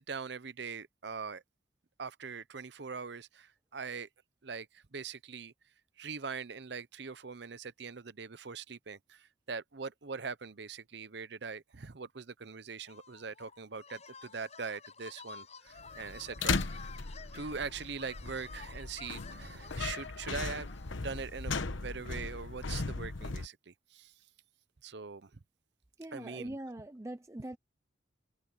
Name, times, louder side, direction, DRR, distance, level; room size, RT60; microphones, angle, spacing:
voice 1, 0.0-1.4 2.0-4.1 4.4-5.5 6.0-16.6 17.3-20.7 21.0-24.1 24.8-25.3 26.1-26.6, right 5 dB, 60° right, 0.8 m, -42 dB
sound 1, 12.9-21.0, left 5 dB, 35° left, 7.7 m, -51 dB
sound 2, 15.8-23.5, left 4 dB, 85° left, 1.1 m, -37 dB
voice 2, 26.0-27.6, right 1 dB, 15° right, 0.5 m, -42 dB
head